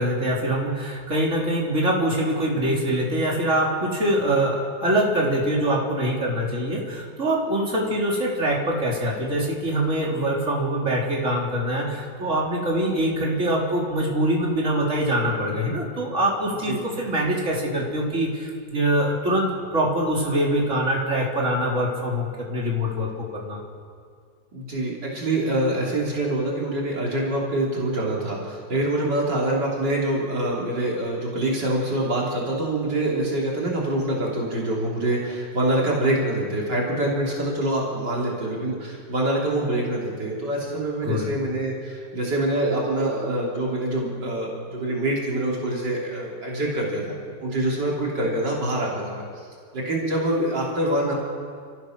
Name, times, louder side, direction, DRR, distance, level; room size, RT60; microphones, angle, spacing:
voice 1, 0.0-23.6 41.0-41.3, right 1 dB, 40° right, -3 dB, 3.9 m, -24 dB
voice 2, 24.5-49.2 49.7-51.1, right 1 dB, 65° right, -3 dB, 3.9 m, -25 dB
29.5 x 14.5 x 6.5 m, 2.1 s
omnidirectional pair, 2.0 m